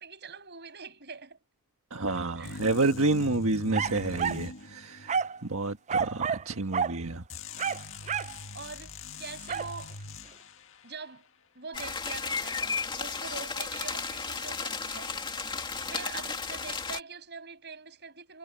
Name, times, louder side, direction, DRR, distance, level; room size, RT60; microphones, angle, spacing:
voice 1, 0.0-1.4 2.3-2.6 8.5-10.0 10.8-11.3 11.5-15.1 15.9-18.4, right 5 dB, 50° right, 7.6 m, -43 dB
voice 2, 1.9-7.2, right 2 dB, 70° right, 1.6 m, -29 dB
sound 1, 2.4-5.3 7.3-10.7, left 3 dB, 60° left, 1.9 m, -42 dB
sound 2, 3.7-4.5 5.1-5.4 5.9-6.5 6.7-7.0 7.6-8.4 9.5-9.7, right 6 dB, 30° right, 0.4 m, -29 dB
sound 3, 11.7-17.0, left 5 dB, 20° left, 2.4 m, -34 dB
head